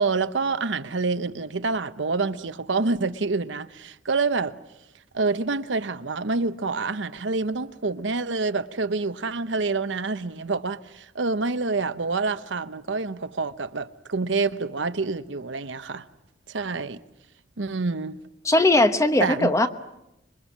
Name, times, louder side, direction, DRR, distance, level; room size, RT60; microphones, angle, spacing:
voice 1, 0.0-4.6 5.1-16.0 16.5-17.0 17.6-18.2 19.2-19.5, right 3 dB, 80° right, 0.9 m, -27 dB
voice 2, 18.4-19.7, left 2 dB, 15° left, 1.1 m, -19 dB
26.0 x 23.5 x 7.4 m
head